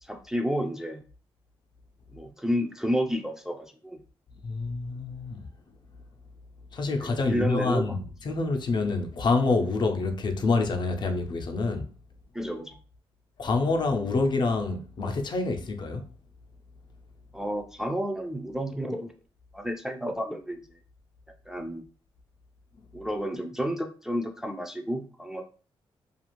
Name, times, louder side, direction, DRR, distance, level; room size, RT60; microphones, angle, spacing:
voice 1, 0.0-1.0 2.1-4.0 7.0-8.0 12.3-12.8 17.3-19.1 19.5-20.6 21.5-21.8 22.9-25.4, equal, 5° right, 0.4 m, -31 dB
voice 2, 4.4-5.4 6.7-8.0 8.2-11.9 13.4-16.1, left 3 dB, 50° left, 0.5 m, -27 dB
2.4 x 2.4 x 3.0 m
cardioid pair, 90°, 10 cm